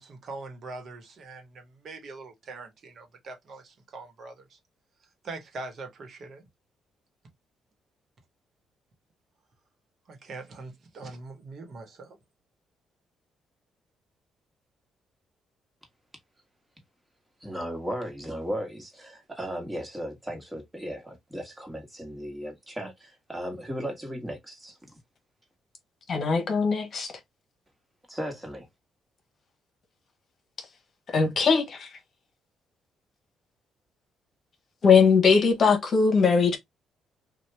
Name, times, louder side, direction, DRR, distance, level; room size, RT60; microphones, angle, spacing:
voice 1, 0.0-4.6 5.2-6.4 10.1-12.2, right 3 dB, 55° right, 1.1 m, -42 dB
voice 2, 17.4-25.0 28.1-28.7, equal, 10° right, 1.4 m, -36 dB
voice 3, 26.1-27.1 31.1-31.9 34.8-36.6, left 5 dB, 50° left, 1.0 m, -21 dB
2.8 x 2.4 x 3.3 m
cardioid pair, 90°, 0 cm